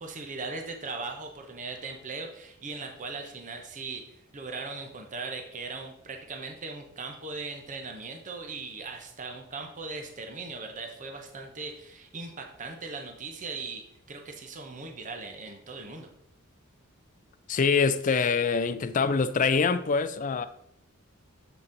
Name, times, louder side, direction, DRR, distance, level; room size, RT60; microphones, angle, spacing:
voice 1, 0.0-16.1, right 3 dB, 35° right, 0.7 m, -39 dB
voice 2, 17.5-20.5, left 5 dB, 40° left, 0.4 m, -24 dB
7.3 x 3.9 x 3.8 m
head